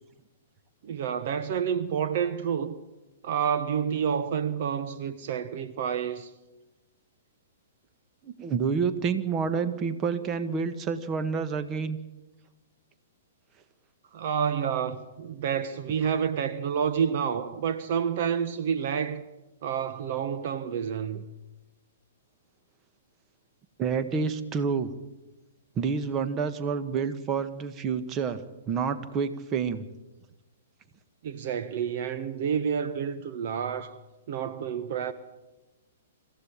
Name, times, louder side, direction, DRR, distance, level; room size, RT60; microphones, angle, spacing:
voice 1, 0.8-2.8 3.2-6.3 14.1-19.2 19.6-21.2 31.2-34.0 34.3-35.1, right 7 dB, 55° right, 1.3 m, -29 dB
voice 2, 8.2-12.0 23.8-24.9 25.8-29.8, right 6 dB, 25° right, 1.7 m, -28 dB
26.5 x 15.0 x 8.9 m
hypercardioid pair, 120°, 0 cm